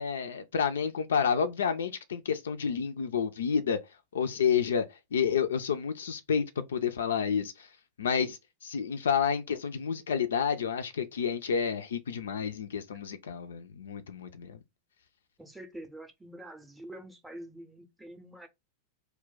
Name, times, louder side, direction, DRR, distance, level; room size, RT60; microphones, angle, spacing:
voice 1, 0.0-3.8 4.1-4.9 5.1-7.7 8.0-14.6, left 7 dB, 65° left, 0.3 m, -30 dB
voice 2, 15.4-18.5, right 1 dB, 5° right, 0.6 m, -46 dB
2.2 x 2.1 x 3.8 m
figure-of-eight pair, 90°, 0 cm